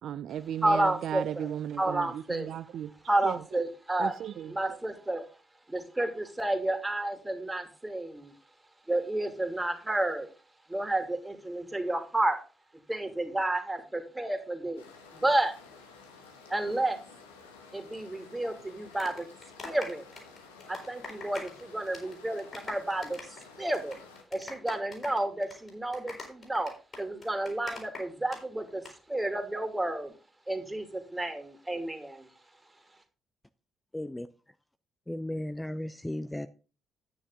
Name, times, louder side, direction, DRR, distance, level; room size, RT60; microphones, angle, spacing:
voice 1, 0.0-3.6 4.0-4.8, right 10 dB, 60° right, 0.4 m, -36 dB
voice 2, 0.6-1.5 1.8-2.5 3.1-4.1 4.5-5.2 5.7-8.3 8.9-10.3 10.7-12.4 12.9-14.8 15.1-15.5 16.5-17.0 17.7-19.3 19.6-20.0 20.7-23.2 23.6-24.0 24.3-26.7 27.0-28.8 29.1-30.1 30.5-32.3, right 1 dB, 15° right, 2.7 m, -31 dB
sound 1, 14.8-24.2, left 4 dB, 85° left, 1.6 m, -52 dB
sound 2, 18.7-21.6 21.9-22.1 22.4-28.4 28.7-28.9, left 3 dB, 45° left, 5.4 m, -43 dB
voice 3, 33.9-34.3 35.1-36.5, left 1 dB, 10° left, 0.6 m, -35 dB
9.7 x 9.7 x 3.7 m
figure-of-eight pair, 40°, 0 cm